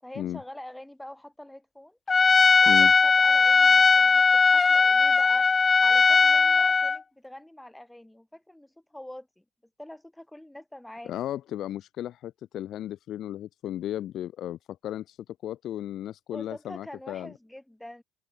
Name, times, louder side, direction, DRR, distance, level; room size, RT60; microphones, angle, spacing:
voice 1, 0.0-2.0 2.5-5.5 5.8-9.4 9.8-11.1 16.3-18.0, left 1 dB, 5° left, 6.8 m, -44 dB
Trumpet, 2.1-7.0, left 4 dB, 25° left, 0.4 m, -19 dB
voice 2, 11.0-15.2 15.4-17.3, left 12 dB, 55° left, 1.3 m, -34 dB
hypercardioid pair, 65°, 0 cm